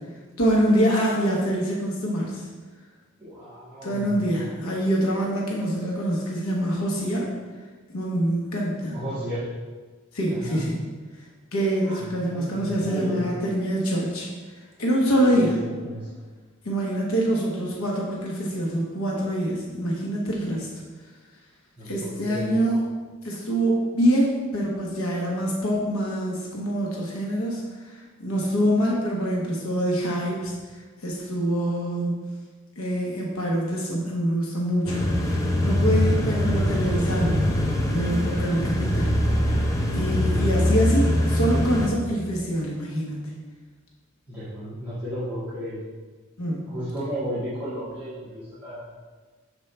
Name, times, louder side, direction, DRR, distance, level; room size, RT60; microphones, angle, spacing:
voice 1, 0.4-2.5 3.8-7.3 7.9-9.0 10.1-10.8 11.5-14.3 14.8-15.6 16.6-20.7 21.8-22.8 23.2-32.1 32.8-37.4 37.9-39.1 39.4-39.6 39.9-43.3 46.4-46.7, right 1 dB, 85° left, -2 dB, 0.9 m, -25 dB
voice 2, 3.2-4.7 5.1-5.2 8.9-9.5 10.3-10.6 11.8-13.3 15.3-16.1 21.8-22.6 44.3-45.8 46.6-48.9, equal, 10° right, -14 dB, 1.6 m, -34 dB
sound 1, 34.9-41.9, left 1 dB, 15° left, 0.6 m, -23 dB
6.7 x 4.5 x 3.3 m, 1.4 s
head